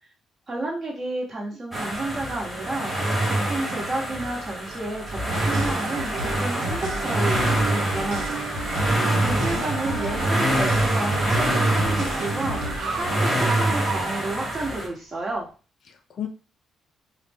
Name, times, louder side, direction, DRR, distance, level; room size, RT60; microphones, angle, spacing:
voice 1, 0.5-8.4 9.2-15.5, right 2 dB, 25° right, -1 dB, 1.1 m, -31 dB
sound 1, 1.7-14.9, right 1 dB, 5° right, 0.8 m, -25 dB
sound 2, 5.3-13.0, right 2 dB, 85° right, 0.8 m, -32 dB
Car, 7.7-15.4, right 5 dB, 50° right, 0.5 m, -38 dB
voice 2, 9.0-9.6 15.9-16.3, left 6 dB, 45° left, 6 dB, 0.4 m, -34 dB
3.9 x 2.1 x 3.4 m, 0.35 s
cardioid pair, 165°, 0 cm